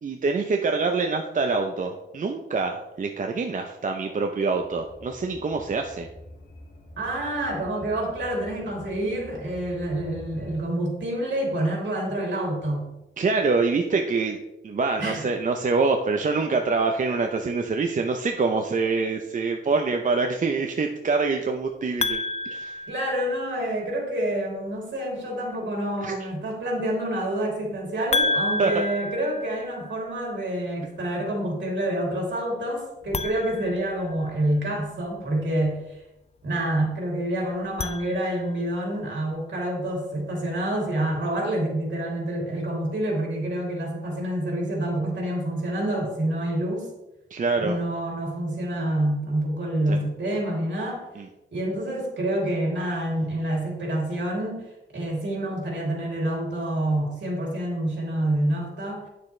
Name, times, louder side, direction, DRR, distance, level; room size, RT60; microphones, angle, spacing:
voice 1, 0.0-6.1 13.2-14.4 14.6-22.8 26.0-26.2 28.6-28.8 47.3-47.8 49.9-50.1 51.2-51.3, right 4 dB, 40° right, 3 dB, 0.6 m, -25 dB
sound 1, 4.5-10.6, left 1 dB, 50° left, 1.7 m, -46 dB
voice 2, 7.0-12.9 15.0-15.2 22.9-35.8 36.4-46.9 47.6-51.1 51.5-54.6 54.9-59.1, right 1 dB, 65° right, -2 dB, 2.9 m, -27 dB
sound 2, 22.0-23.7 28.1-30.1 33.0-34.6 37.5-38.8, left 2 dB, 35° left, 0.4 m, -30 dB
9.8 x 6.8 x 3.2 m, 0.96 s
wide cardioid pair, 155°, 20 cm